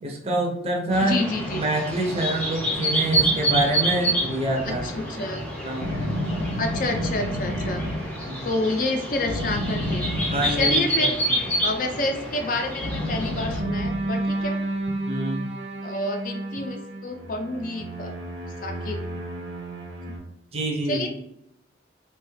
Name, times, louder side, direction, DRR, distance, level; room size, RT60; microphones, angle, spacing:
voice 1, 0.0-1.2 1.5-4.9 5.6-6.0 8.3-8.5 10.3-11.4 15.1-15.5 20.5-21.1, right 1 dB, 30° right, 1 dB, 0.5 m, -26 dB
sound 1, 0.9-13.6, right 1 dB, 5° left, 0.7 m, -28 dB
voice 2, 1.0-1.6 4.7-5.4 6.6-7.8 8.4-10.1 10.5-11.2 11.6-14.6 15.8-18.1 18.6-19.0 20.9-21.1, left 2 dB, 45° left, 5 dB, 0.4 m, -29 dB
sound 2, 2.7-5.1 5.8-8.4 9.3-11.3 12.8-14.5, left 1 dB, 90° left, 0.6 m, -30 dB
sound 3, 13.6-20.2, right 2 dB, 85° right, 0.7 m, -31 dB
3.1 x 2.3 x 3.0 m, 0.80 s
head